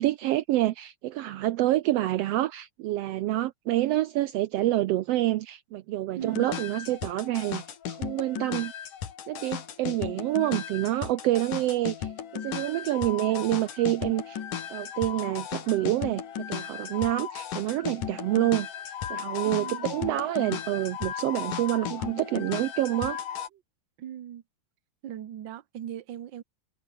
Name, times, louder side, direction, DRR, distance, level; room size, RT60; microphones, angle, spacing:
voice 1, 0.0-7.6 7.9-8.7 9.3-14.4 14.7-16.2 16.5-18.7 19.1-23.2, right 15 dB, 80° right, 1.4 m, -27 dB
voice 2, 6.1-6.5 19.4-19.9 23.5-23.6 24.0-24.4 25.0-26.4, right 10 dB, 55° right, 1.3 m, -39 dB
sound 1, 6.2-23.5, left 8 dB, 85° left, 3.9 m, -36 dB
omnidirectional pair, 3.6 m